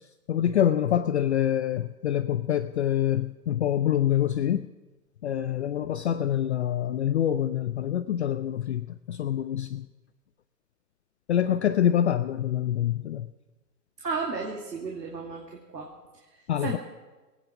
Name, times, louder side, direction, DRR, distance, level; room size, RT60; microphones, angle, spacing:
voice 1, 0.3-4.7 5.2-9.9 11.3-13.3 16.5-16.8, left 10 dB, 45° left, 12 dB, 0.5 m, -26 dB
voice 2, 14.0-15.9 16.3-16.8, right 4 dB, 85° right, 0 dB, 2.5 m, -34 dB
23.0 x 9.2 x 5.9 m, 1.2 s
hypercardioid pair, 140°, 49 cm